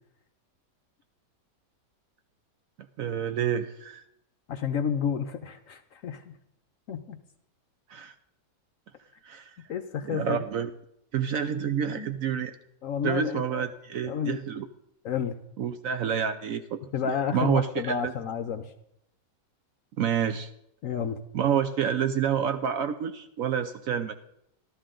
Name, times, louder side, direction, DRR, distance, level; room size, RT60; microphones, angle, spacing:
voice 1, 3.0-4.0 7.9-8.1 9.2-9.6 10.0-10.7 11.1-12.6 13.0-14.7 15.6-18.1 20.0-20.5 21.3-24.1, right 8 dB, 65° right, 9 dB, 0.9 m, -28 dB
voice 2, 4.5-6.3 6.9-7.2 9.7-10.4 12.0-12.1 12.8-13.7 14.0-14.4 15.0-15.3 16.9-18.7 20.8-21.2, left 7 dB, 65° left, 8 dB, 0.9 m, -30 dB
14.0 x 13.0 x 3.8 m, 0.77 s
omnidirectional pair, 1.9 m